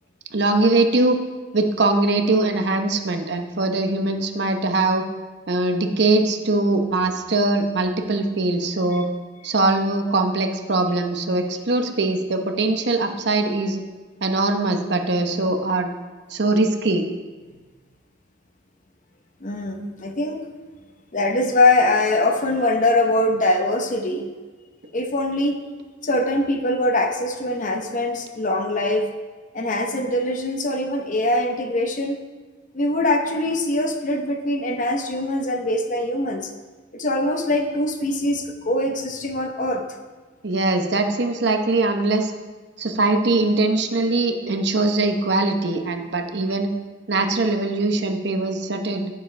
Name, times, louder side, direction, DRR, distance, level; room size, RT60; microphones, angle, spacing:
voice 1, 0.3-1.2 1.5-5.0 5.5-9.1 9.4-13.8 14.2-15.9 16.3-17.1 40.4-42.3 42.8-46.7 47.1-49.1, right 2 dB, 65° right, 5 dB, 0.9 m, -21 dB
voice 2, 19.4-20.5 21.1-24.3 24.9-25.6 26.0-29.1 29.5-32.2 32.7-36.5 36.9-39.9, left 1 dB, 45° left, 4 dB, 0.9 m, -22 dB
15.0 x 7.4 x 3.4 m, 1.3 s
head